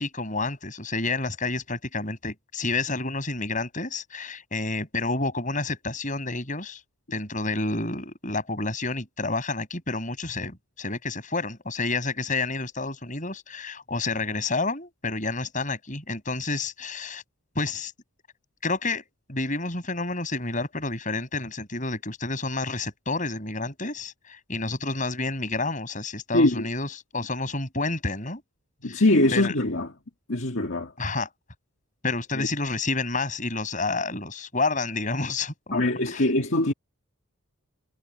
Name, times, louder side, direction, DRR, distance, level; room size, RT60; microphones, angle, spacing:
voice 1, 0.0-6.8 7.1-17.2 17.6-17.9 18.6-28.4 28.8-29.0 29.3-29.5 31.0-31.3 32.0-35.9 36.1-36.3, left 3 dB, 35° left, 7.5 m, -29 dB
voice 2, 26.3-26.7 28.8-29.9 30.3-30.9 32.3-32.5 35.7-36.7, left 1 dB, 60° left, 2.1 m, -22 dB
head